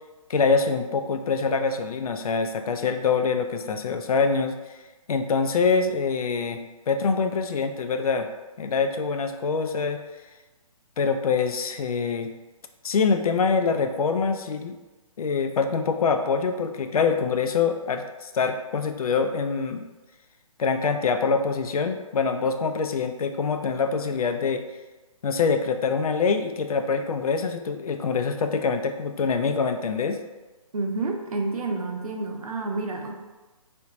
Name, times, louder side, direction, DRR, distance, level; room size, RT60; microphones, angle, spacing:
voice 1, 0.3-4.6 5.1-8.3 8.6-10.0 11.0-12.3 12.8-14.8 15.2-19.8 20.6-24.6 25.2-30.2, left 5 dB, 80° left, 7 dB, 0.4 m, -25 dB
voice 2, 30.7-33.1, right 3 dB, 80° right, 3 dB, 0.6 m, -29 dB
3.3 x 2.6 x 2.9 m, 1.2 s
hypercardioid pair, 150°, 18 cm